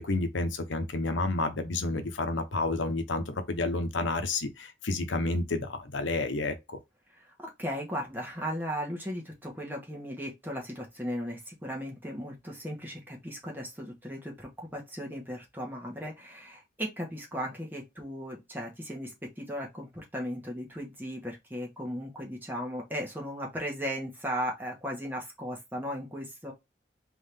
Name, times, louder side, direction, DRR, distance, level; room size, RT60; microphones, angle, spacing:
voice 1, 0.0-6.8, left 2 dB, 90° left, 0.8 m, -30 dB
voice 2, 7.2-26.5, equal, 10° right, 1.4 m, -36 dB
3.7 x 3.2 x 3.4 m
head